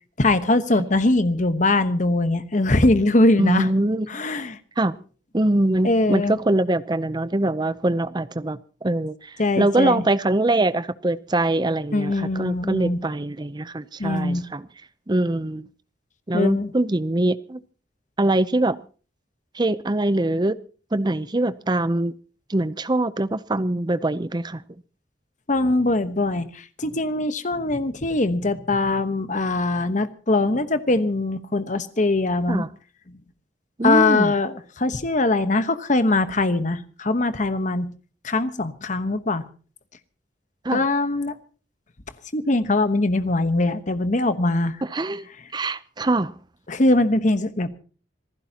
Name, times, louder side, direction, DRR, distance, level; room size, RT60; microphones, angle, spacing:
voice 1, 0.2-3.7 4.1-4.6 5.8-6.4 9.4-10.0 11.9-13.0 14.0-14.4 16.3-16.7 25.5-32.7 33.8-37.9 38.2-39.4 40.7-41.3 42.3-44.8 46.7-47.7, left 2 dB, 45° left, 1.1 m, -22 dB
voice 2, 3.4-4.1 4.8-4.9 5.3-14.7 15.1-15.7 16.3-17.6 18.2-18.8 19.5-20.6 20.9-22.1 22.5-24.6 32.5-32.7 33.8-34.3 40.6-40.8 44.8-45.3 45.5-46.3, right 2 dB, 25° right, 0.6 m, -23 dB
26.5 x 15.5 x 2.9 m
head